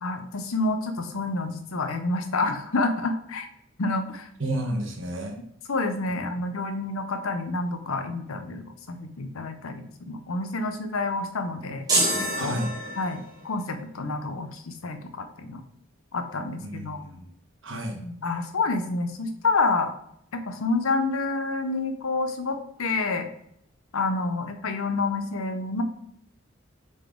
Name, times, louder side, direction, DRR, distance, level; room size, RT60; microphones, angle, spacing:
voice 1, 0.0-3.5 3.8-4.3 5.7-11.9 12.3-12.6 13.0-15.6 16.1-17.0 18.0-19.9 20.3-23.3 23.9-25.8, left 3 dB, 75° left, 7 dB, 0.7 m, -28 dB
voice 2, 4.4-5.4 6.1-6.2 12.3-12.7 16.6-17.3 17.6-18.0, right 1 dB, 60° right, 2 dB, 1.2 m, -31 dB
sound 1, 11.9-13.4, right 2 dB, 20° right, 2.2 m, -26 dB
6.8 x 4.0 x 3.8 m, 0.72 s
head